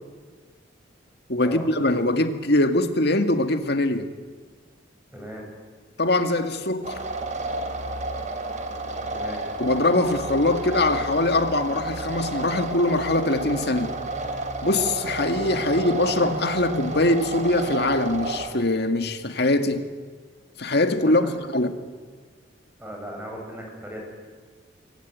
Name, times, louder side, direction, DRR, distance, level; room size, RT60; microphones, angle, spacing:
voice 1, 1.3-4.1 6.0-7.0 9.6-14.0 14.6-19.9 20.6-21.8, left 2 dB, 60° left, 7 dB, 2.1 m, -22 dB
voice 2, 5.1-5.5 9.1-9.4 15.7-15.8 21.0-21.4 22.8-24.0, equal, 10° right, 0 dB, 7.5 m, -37 dB
sound 1, 6.8-18.5, right 2 dB, 40° right, 3.3 m, -31 dB
27.5 x 22.5 x 9.4 m, 1.5 s
head